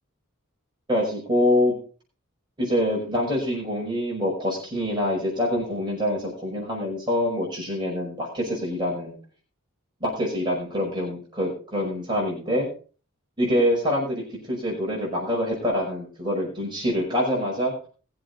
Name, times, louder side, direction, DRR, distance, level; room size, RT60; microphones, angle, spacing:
voice 1, 0.9-1.7 2.6-9.2 10.0-12.7 13.4-17.7, left 1 dB, 20° right, -3 dB, 5.5 m, -25 dB
20.0 x 7.9 x 4.0 m, 0.38 s
head